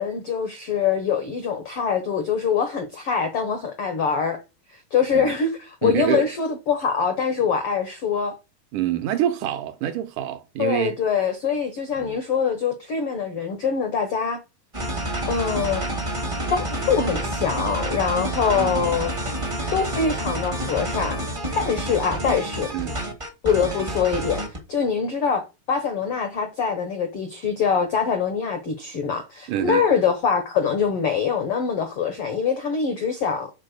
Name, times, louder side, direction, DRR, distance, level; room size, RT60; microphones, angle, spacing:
voice 1, 0.0-4.4 4.7-8.3 10.6-14.4 15.3-15.8 16.5-19.1 19.7-21.2 21.5-22.7 23.4-33.5, left 6 dB, 80° left, 1.2 m, -24 dB
voice 2, 5.8-6.2 8.7-11.0 12.0-12.2 18.6-18.9 22.7-23.0 29.5-29.8, right 11 dB, 75° right, 2.0 m, -26 dB
sound 1, 14.7-24.6, right 1 dB, 40° right, 0.4 m, -28 dB
7.4 x 4.4 x 6.5 m
omnidirectional pair, 4.3 m